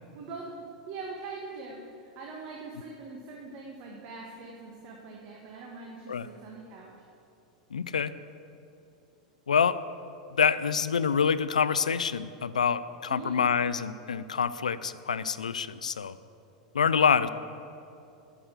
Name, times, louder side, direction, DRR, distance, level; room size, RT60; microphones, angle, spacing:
voice 1, 0.1-7.0 13.1-13.4, right 3 dB, 50° right, -1 dB, 1.4 m, -42 dB
voice 2, 7.7-8.1 9.5-9.8 10.3-16.2 16.7-17.3, left 6 dB, 90° left, 15 dB, 0.4 m, -26 dB
8.6 x 6.9 x 8.2 m, 2.7 s
hypercardioid pair, 100°, 4 cm